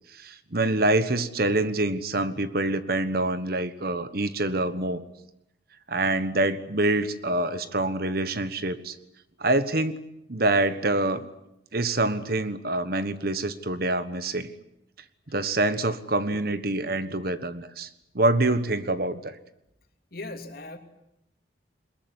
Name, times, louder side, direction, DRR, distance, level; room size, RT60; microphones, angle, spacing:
voice 1, 0.1-5.0 5.9-8.9 9.4-10.0 10.3-11.3 11.7-14.5 15.3-17.9 18.1-19.4, right 2 dB, 55° right, 12 dB, 1.3 m, -26 dB
voice 2, 20.1-20.8, left 2 dB, 55° left, 5 dB, 3.0 m, -38 dB
22.0 x 21.0 x 9.7 m, 0.83 s
head